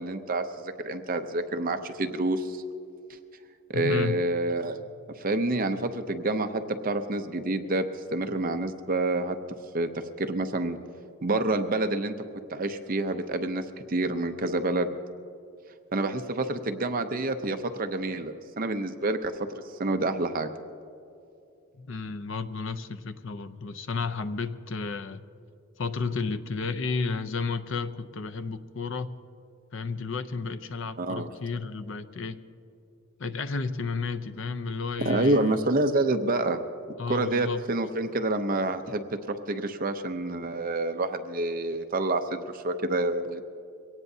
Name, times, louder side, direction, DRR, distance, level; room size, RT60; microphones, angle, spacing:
voice 1, 0.0-2.6 3.7-4.8 5.2-7.9 8.1-9.4 9.7-10.8 11.2-12.1 12.5-15.0 15.9-19.3 19.8-20.5 31.0-31.3 35.0-36.6 37.1-43.4, right 2 dB, 40° right, 7 dB, 0.6 m, -28 dB
voice 2, 3.7-4.2 21.8-25.2 25.8-29.1 29.7-32.4 33.2-35.6 37.0-37.6, left 4 dB, 60° left, 11 dB, 0.6 m, -32 dB
23.5 x 18.0 x 2.7 m, 2.6 s
head